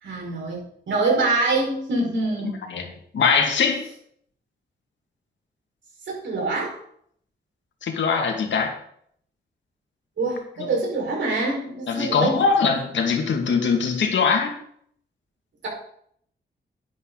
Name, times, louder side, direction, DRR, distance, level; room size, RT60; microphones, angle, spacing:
voice 1, 0.0-2.6 6.1-6.8 10.2-12.4, right 3 dB, 85° right, -2 dB, 5.4 m, -25 dB
voice 2, 2.4-3.8 7.8-8.7 10.6-10.7 11.9-14.6, left 5 dB, 90° left, 3 dB, 2.3 m, -22 dB
11.0 x 11.0 x 4.1 m, 0.65 s
wide cardioid pair, 175°, 19 cm